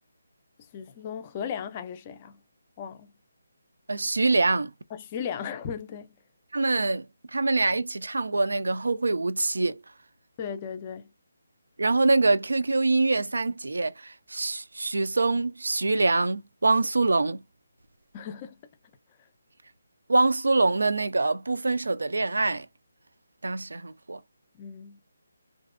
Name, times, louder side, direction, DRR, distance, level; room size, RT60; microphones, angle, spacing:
voice 1, 0.7-2.4 2.8-3.1 4.9-6.2 10.4-11.1 18.1-18.6 24.5-25.0, left 7 dB, 25° left, 0.4 m, -36 dB
voice 2, 3.9-4.7 6.5-9.9 11.8-17.4 20.1-22.7 23.4-24.2, right 3 dB, 85° right, 0.4 m, -25 dB
2.5 x 2.0 x 2.4 m
figure-of-eight pair, 165°, 0 cm